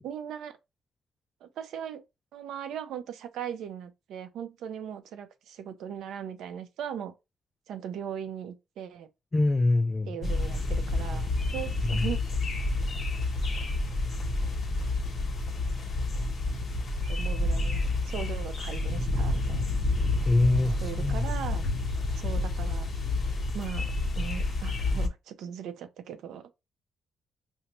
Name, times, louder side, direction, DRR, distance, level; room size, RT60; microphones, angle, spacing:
voice 1, 0.0-0.6 1.4-2.0 2.3-7.1 7.7-9.1 10.1-12.2 17.1-19.8 20.8-21.6 22.2-22.9 23.5-26.5, right 9 dB, 80° right, 0.6 m, -39 dB
voice 2, 9.3-10.2 11.8-12.1 20.3-21.3, left 2 dB, 25° left, 0.3 m, -25 dB
sound 1, 10.2-25.1, left 2 dB, 45° left, 0.9 m, -29 dB
5.2 x 2.1 x 2.9 m
cardioid pair, 90°, 0 cm